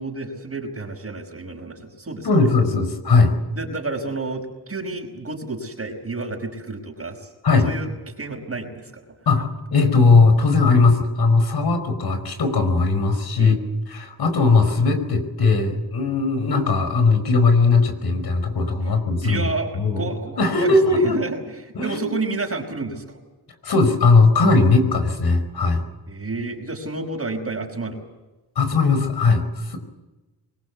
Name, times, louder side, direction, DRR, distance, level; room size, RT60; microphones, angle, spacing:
voice 1, 0.0-2.3 3.6-7.3 7.6-9.0 13.4-13.6 18.8-19.0 19.2-19.7 20.0-23.2 26.1-28.0, right 3 dB, 35° right, 1 dB, 5.3 m, -30 dB
voice 2, 2.2-3.3 7.4-7.7 9.3-13.6 13.9-19.5 19.8-20.1 20.4-21.2 21.8-22.1 23.6-25.8 28.6-29.8, left 3 dB, 70° left, 8 dB, 5.1 m, -18 dB
23.5 x 21.0 x 8.4 m, 1.1 s
cardioid pair, 70°, 40 cm